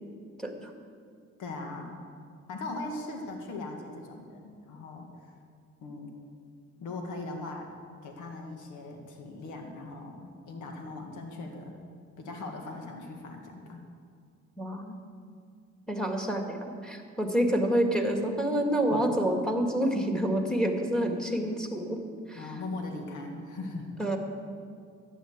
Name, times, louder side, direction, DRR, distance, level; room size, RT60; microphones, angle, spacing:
voice 1, 0.4-0.7 14.6-14.9 15.9-22.0 22.3-22.5 24.0-24.2, right 1 dB, ahead, 3 dB, 1.8 m, -28 dB
voice 2, 1.4-2.0 2.5-5.3 5.8-6.1 6.8-7.7 8.0-11.8 12.2-13.8 18.9-19.0 22.3-23.9, left 2 dB, 80° left, 2 dB, 1.7 m, -39 dB
11.5 x 9.0 x 7.3 m, 2.3 s
cardioid pair, 90°, 30 cm